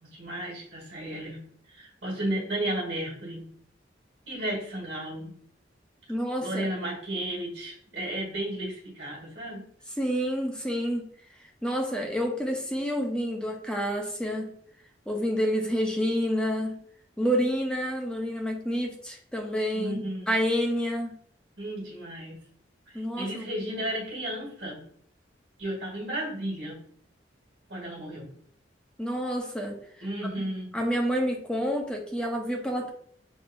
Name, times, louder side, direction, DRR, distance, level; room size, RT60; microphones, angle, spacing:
voice 1, 0.0-1.4 1.7-3.5 4.3-5.3 6.4-9.7 19.7-20.3 21.6-22.4 22.9-24.8 25.6-26.8 27.7-28.3 30.0-30.8, right 1 dB, 75° right, -3 dB, 1.6 m, -33 dB
voice 2, 6.1-6.7 10.0-11.1 11.6-14.5 15.1-16.8 17.2-21.2 22.9-23.5 29.0-29.8 30.7-32.9, equal, 5° left, 1 dB, 0.7 m, -28 dB
6.2 x 2.6 x 2.6 m, 0.63 s
head